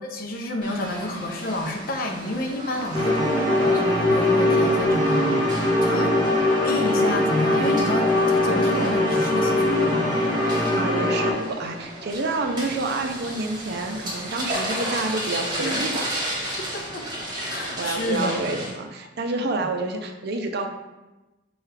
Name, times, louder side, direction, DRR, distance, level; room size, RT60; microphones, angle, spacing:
voice 1, 0.0-5.4 5.8-6.3 6.6-10.2 15.6-16.1 16.6-17.0 17.5-18.6 19.6-19.7, left 1 dB, 50° left, 2 dB, 0.5 m, -29 dB
sound 1, 0.6-18.7, right 1 dB, 25° right, 1.2 m, -34 dB
sound 2, 2.9-11.3, left 1 dB, 20° left, 1.0 m, -21 dB
voice 2, 5.9-6.2 10.4-16.1 17.5-20.7, right 2 dB, 60° right, 4 dB, 0.5 m, -29 dB
5.5 x 2.3 x 3.3 m, 1.1 s
head